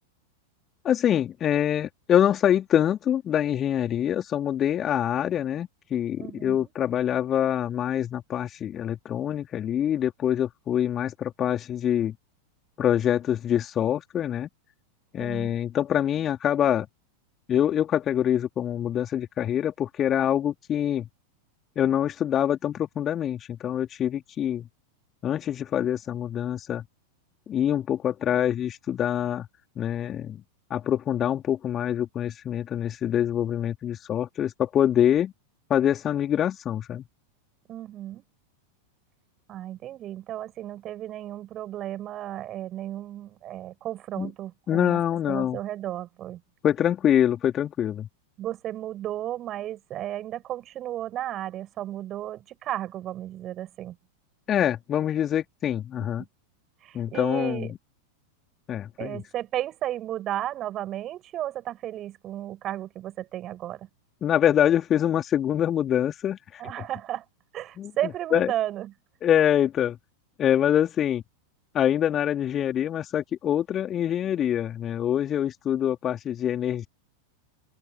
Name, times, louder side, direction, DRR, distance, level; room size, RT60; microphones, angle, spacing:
voice 1, 0.8-12.1 12.8-14.5 15.1-16.9 17.5-21.1 21.7-24.7 25.2-26.8 27.5-29.5 29.8-30.4 30.7-35.3 35.7-37.0 44.2-44.3 44.7-45.6 46.6-48.1 54.5-56.2 56.9-57.7 58.7-59.2 64.2-66.6 67.8-67.9 68.3-68.5 69.2-70.0 70.4-71.2 71.7-76.9, left 10 dB, 25° left, 3.3 m, -25 dB
voice 2, 6.2-6.7 15.2-15.6 37.7-38.2 39.5-45.0 45.3-46.4 48.4-54.0 56.8-57.7 59.0-63.9 66.6-67.3 67.5-68.9, right 13 dB, 30° right, 6.9 m, -34 dB
open air
figure-of-eight pair, 90°, 0 cm